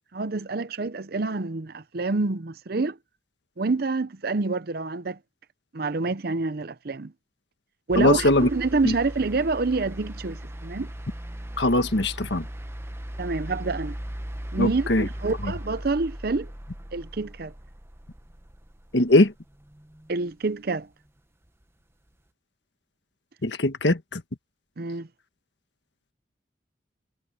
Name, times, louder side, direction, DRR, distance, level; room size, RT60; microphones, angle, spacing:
voice 1, 0.0-3.0 3.6-5.2 5.7-7.1 7.9-10.9 13.2-14.0 14.5-16.5 16.9-17.5 20.1-20.9 24.8-25.1, right 3 dB, 55° right, 0.7 m, -27 dB
sound 1, 7.9-20.2 21.5-21.6, equal, 15° right, 1.0 m, -38 dB
voice 2, 8.0-8.5 8.8-8.9 11.6-12.5 14.6-15.1 18.9-19.3 23.4-24.2, left 2 dB, 75° left, 1.5 m, -21 dB
head